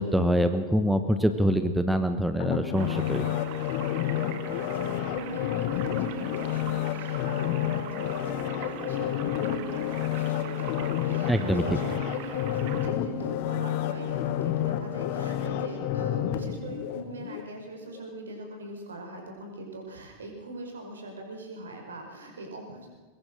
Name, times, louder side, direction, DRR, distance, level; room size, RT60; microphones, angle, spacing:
voice 1, 0.0-3.4 11.3-11.8, equal, ahead, 9 dB, 1.1 m, -25 dB
sound 1, 2.4-17.4 17.9-18.0, left 11 dB, 50° left, 1.4 m, -30 dB
sound 2, 2.7-12.9, right 10 dB, 45° right, 1.9 m, -43 dB
voice 2, 4.0-22.9, right 2 dB, 70° right, 2 dB, 5.4 m, -41 dB
23.0 x 21.0 x 6.5 m, 1.4 s
figure-of-eight pair, 90°, 0 cm